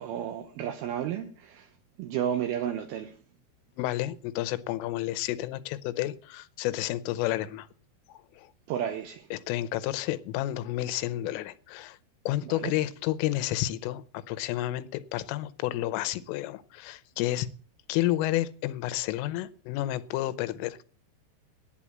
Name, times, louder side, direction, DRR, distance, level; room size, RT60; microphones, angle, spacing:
voice 1, 0.0-1.7 2.0-3.1 8.7-9.3 12.4-12.7, right 9 dB, 80° right, 2.2 m, -32 dB
voice 2, 3.8-7.7 8.1-8.5 9.3-12.0 12.3-17.5 17.9-20.9, left 15 dB, 85° left, 3.3 m, -31 dB
11.5 x 9.9 x 7.3 m
omnidirectional pair, 5.7 m